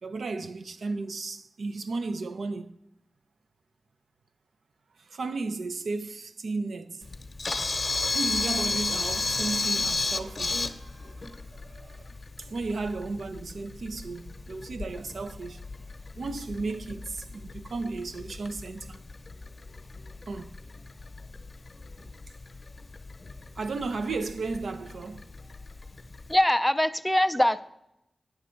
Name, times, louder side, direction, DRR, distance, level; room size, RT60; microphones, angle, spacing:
voice 1, 0.0-2.8 5.0-7.0 8.1-12.1 12.4-19.0 20.3-20.6 23.6-25.2, right 3 dB, 80° right, 0.5 m, -34 dB
Camera, 7.0-26.4, left 3 dB, 40° left, 0.8 m, -34 dB
voice 2, 26.3-27.6, left 1 dB, 5° left, 0.4 m, -22 dB
9.5 x 6.3 x 4.4 m
wide cardioid pair, 100°, 0 cm